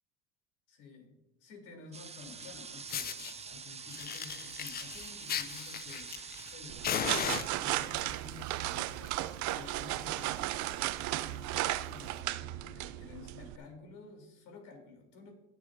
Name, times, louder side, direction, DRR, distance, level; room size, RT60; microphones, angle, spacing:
voice 1, 0.7-10.9 11.2-15.4, left 4 dB, 65° left, 2 dB, 3.4 m, -52 dB
sound 1, 1.9-7.3, right 5 dB, 20° right, 0.7 m, -46 dB
Fire, 2.4-2.5 2.9-3.3 3.9-6.5 6.8-8.0 8.8-9.1 9.4-9.5 9.9-10.0 10.2-10.5 11.0-11.1 12.0-12.1, left 9 dB, 30° left, 0.5 m, -37 dB
sound 2, 6.7-13.6, right 16 dB, 60° right, 0.5 m, -35 dB
19.0 x 7.0 x 2.6 m, 0.91 s
supercardioid pair, 95°, 34 cm